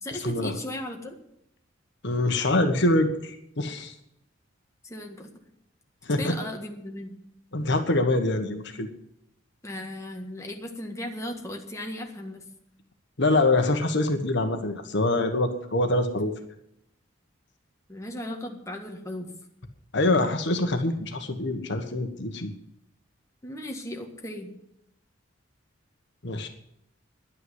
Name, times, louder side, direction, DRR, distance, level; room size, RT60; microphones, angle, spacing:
voice 1, 0.0-1.2 4.8-5.3 6.2-7.1 9.6-12.4 17.9-19.3 23.4-24.5, left 1 dB, 15° left, 2 dB, 1.7 m, -36 dB
voice 2, 2.0-3.9 6.0-6.3 7.5-8.9 13.2-16.3 19.9-22.5 26.2-26.5, left 2 dB, 65° left, 6 dB, 1.4 m, -25 dB
11.0 x 9.2 x 9.8 m, 0.77 s
head